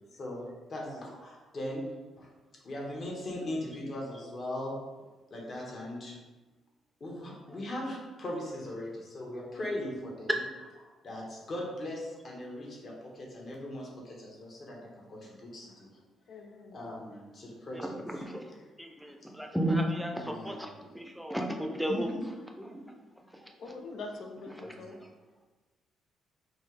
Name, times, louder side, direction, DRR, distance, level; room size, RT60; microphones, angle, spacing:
voice 1, 0.1-0.4 0.7-1.9 2.2-2.3 2.6-4.8 5.3-6.2 7.0-10.3 11.0-15.9 16.7-17.9 20.2-20.6 21.8-22.2 24.7-24.8, left 1 dB, 50° left, -2 dB, 1.3 m, -39 dB
voice 2, 16.3-17.0 23.6-25.1, left 3 dB, 70° left, 3 dB, 0.6 m, -44 dB
voice 3, 17.7-22.9 23.3-23.5 24.5-25.1, right 1 dB, ahead, 2 dB, 0.6 m, -35 dB
4.4 x 2.8 x 3.3 m, 1.2 s
cardioid pair, 90°, 0 cm